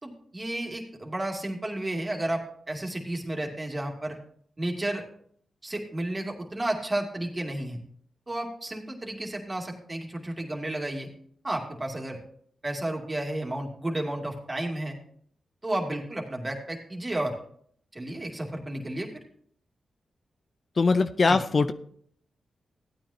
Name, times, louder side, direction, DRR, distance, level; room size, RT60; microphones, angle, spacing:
voice 1, 0.0-4.2 4.6-5.0 5.6-7.8 8.3-11.1 11.4-12.2 12.6-15.0 15.6-17.4 17.9-19.1 21.3-21.4, right 1 dB, 30° right, 1 dB, 2.6 m, -32 dB
voice 2, 20.8-21.7, left 4 dB, 50° left, 10 dB, 0.5 m, -21 dB
15.0 x 9.2 x 2.9 m, 0.63 s
supercardioid pair, 45°, 0 cm